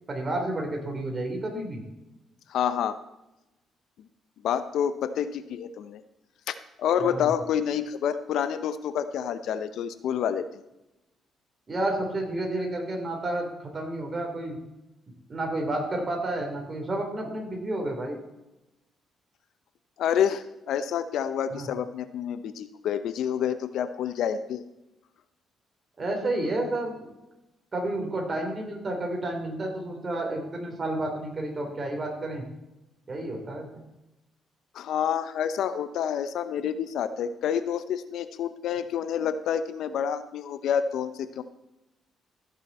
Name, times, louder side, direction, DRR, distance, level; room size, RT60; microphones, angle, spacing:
voice 1, 0.1-1.8 7.0-7.3 11.7-14.6 15.3-18.2 21.5-21.7 26.0-27.1 27.7-32.4 33.1-33.8, right 1 dB, 35° right, 2 dB, 3.7 m, -31 dB
voice 2, 2.5-3.0 4.4-6.0 6.5-10.5 20.0-24.6 34.7-41.4, left 8 dB, 75° left, 12 dB, 0.8 m, -28 dB
15.5 x 7.2 x 4.3 m, 0.95 s
cardioid pair, 90°, 0 cm